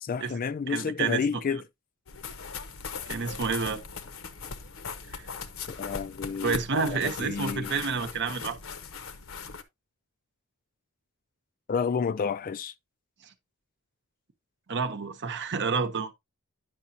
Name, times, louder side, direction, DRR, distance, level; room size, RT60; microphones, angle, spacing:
voice 1, 0.0-1.6 5.7-7.7 11.7-12.7, left 6 dB, 40° left, 0.3 m, -30 dB
voice 2, 0.7-1.4 3.1-3.8 5.1-5.2 6.4-8.6 14.7-16.1, right 5 dB, 55° right, 0.9 m, -29 dB
sound 1, 2.1-9.6, left 5 dB, 70° left, 0.8 m, -39 dB
9.4 x 5.9 x 2.7 m
head